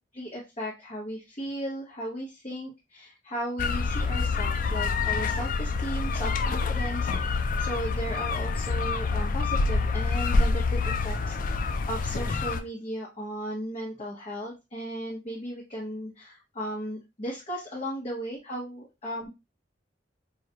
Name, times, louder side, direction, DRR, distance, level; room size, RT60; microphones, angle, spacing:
voice 1, 0.1-11.6 11.9-19.3, equal, 35° left, -4 dB, 1.0 m, -36 dB
sound 1, 3.6-12.6, left 4 dB, 50° left, 0.4 m, -27 dB
4.7 x 2.2 x 2.8 m, 0.24 s
head